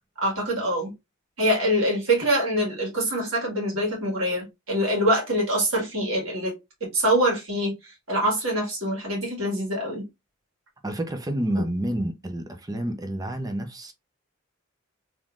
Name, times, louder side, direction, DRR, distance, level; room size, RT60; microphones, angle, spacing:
voice 1, 0.2-0.9 1.4-6.5 6.9-10.0, right 1 dB, 65° right, 1.8 m, -24 dB
voice 2, 10.8-13.9, right 1 dB, 15° right, 0.5 m, -29 dB
3.6 x 3.0 x 2.4 m
head